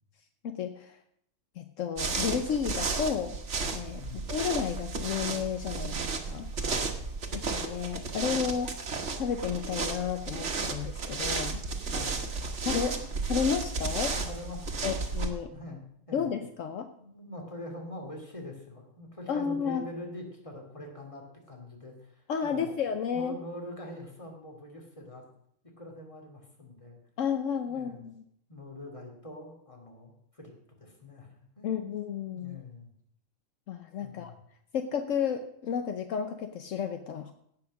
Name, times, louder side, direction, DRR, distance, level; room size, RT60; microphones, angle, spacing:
voice 1, 0.4-1.0 1.6-3.4 3.7-4.0 4.3-6.5 7.3-8.9 9.2-11.6 12.6-14.1 14.8-15.5 16.1-16.9 19.3-19.8 22.3-23.4 27.2-28.2 31.6-32.6 33.7-34.3 34.7-37.3, left 7 dB, 75° left, 7 dB, 1.1 m, -32 dB
sound 1, 2.0-15.3, right 4 dB, 60° right, 1.6 m, -33 dB
voice 2, 4.0-4.3 6.3-7.0 11.9-12.3 14.1-15.0 15.5-15.8 16.1-16.3 17.0-22.8 23.1-25.2 25.8-27.0 27.7-28.1 28.5-30.5 30.8-31.3 31.6-31.7 32.3-32.9 34.0-34.4, left 1 dB, 25° left, 1 dB, 2.6 m, -44 dB
17.0 x 5.8 x 6.4 m, 0.70 s
omnidirectional pair, 1.4 m